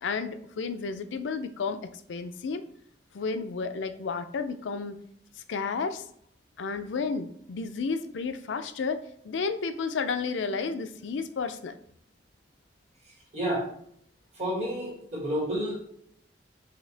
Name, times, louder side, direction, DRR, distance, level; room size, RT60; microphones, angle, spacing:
voice 1, 0.0-2.6 3.1-5.0 5.5-6.0 6.6-9.0 9.2-11.7, left 4 dB, 85° left, 10 dB, 0.4 m, -32 dB
voice 2, 13.3-13.7 14.4-15.8, equal, 40° right, -3 dB, 1.8 m, -30 dB
5.7 x 2.8 x 3.3 m, 0.68 s
head